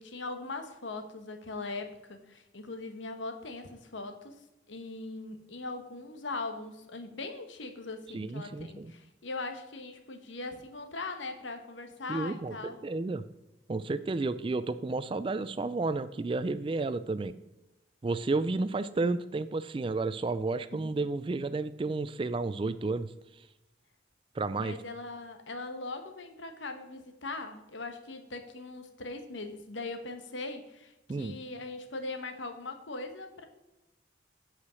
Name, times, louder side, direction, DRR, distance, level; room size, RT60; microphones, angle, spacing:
voice 1, 0.0-4.4 4.7-12.8 24.6-33.4, left 3 dB, 80° left, 7 dB, 1.1 m, -40 dB
voice 2, 8.1-8.9 12.1-13.2 13.7-17.3 18.0-23.1 24.4-24.8 31.1-31.4, right 3 dB, 25° right, 14 dB, 0.3 m, -32 dB
8.5 x 5.0 x 6.2 m, 0.97 s
head